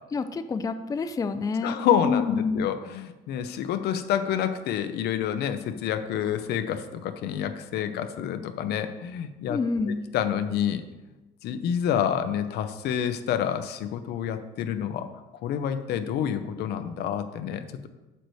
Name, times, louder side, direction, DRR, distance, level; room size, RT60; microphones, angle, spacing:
voice 1, 0.1-1.8 2.0-2.7 9.5-10.1, left 4 dB, 20° left, 9 dB, 0.4 m, -28 dB
voice 2, 1.6-9.6 9.9-10.8 11.4-15.1 15.4-17.9, left 9 dB, 75° left, 9 dB, 0.7 m, -28 dB
8.5 x 6.7 x 3.2 m, 1.1 s
cardioid pair, 110°, 17 cm